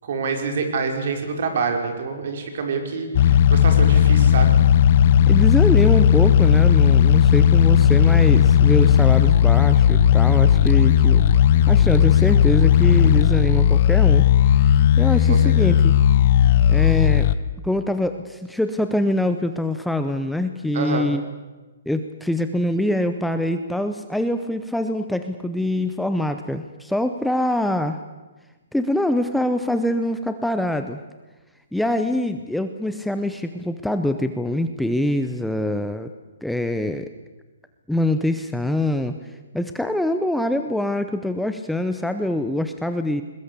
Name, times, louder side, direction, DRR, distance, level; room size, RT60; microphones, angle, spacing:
voice 1, 0.0-4.6 15.3-15.4 20.7-21.1, right 4 dB, 50° right, 5 dB, 4.9 m, -26 dB
sound 1, 3.1-17.3, left 9 dB, 40° left, 1.1 m, -15 dB
voice 2, 5.3-11.3 11.7-16.0 16.7-17.3 17.6-21.2 21.9-28.0 28.7-31.0 31.7-36.1 36.4-37.1 37.9-39.2 39.5-43.2, left 1 dB, ahead, 8 dB, 0.8 m, -24 dB
21.5 x 20.5 x 8.3 m, 1.2 s
hypercardioid pair, 165°, 0 cm